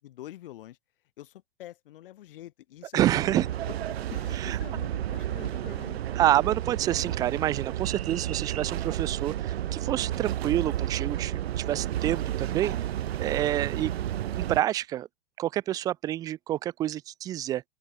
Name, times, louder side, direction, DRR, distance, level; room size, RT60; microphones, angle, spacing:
voice 1, 0.0-0.8 1.2-6.0 13.6-13.9, left 14 dB, 60° left, 7.4 m, -46 dB
voice 2, 2.9-3.5 4.4-4.6 6.2-12.7 13.2-13.9 14.3-15.1 15.4-17.6, right 13 dB, 10° right, 0.5 m, -28 dB
sound 1, 3.0-14.6, right 12 dB, 80° right, 1.8 m, -31 dB
open air
supercardioid pair, 165°, 31 cm